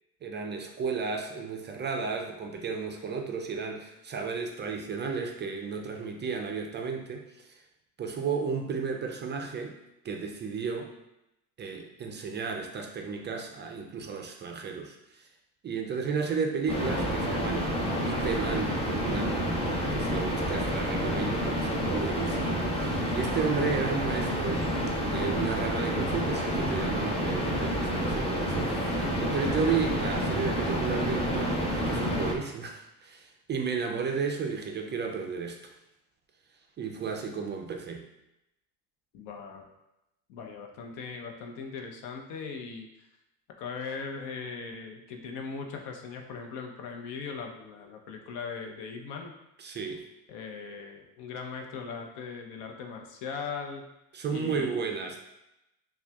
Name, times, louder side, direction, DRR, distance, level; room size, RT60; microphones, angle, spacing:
voice 1, 0.2-7.6 8.0-9.8 10.0-10.9 11.6-15.3 15.6-19.4 19.9-24.7 25.0-35.6 36.8-38.1 49.6-50.0 54.1-55.2, right 5 dB, 30° right, 2 dB, 0.4 m, -33 dB
sound 1, 16.7-32.3, equal, 15° left, 0.7 m, -29 dB
voice 2, 39.1-39.7 40.3-42.9 43.6-49.4 50.3-53.8 54.3-54.7, left 5 dB, 75° left, 3 dB, 0.8 m, -39 dB
5.6 x 2.3 x 2.3 m, 0.91 s
supercardioid pair, 95°, 41 cm